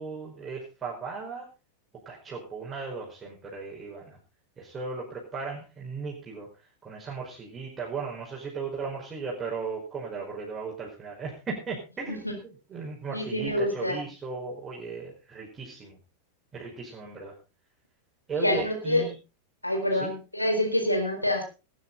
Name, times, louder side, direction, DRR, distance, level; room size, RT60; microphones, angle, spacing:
voice 1, 0.0-1.5 2.0-4.2 4.6-6.5 6.8-16.0 16.5-17.3 18.3-19.2 20.0-20.1, right 4 dB, 20° right, -3 dB, 4.9 m, -36 dB
voice 2, 13.1-14.0 18.4-19.1 19.6-21.4, left 1 dB, 85° left, 3 dB, 4.2 m, -27 dB
19.5 x 10.0 x 4.0 m, 0.32 s
figure-of-eight pair, 90°, 0 cm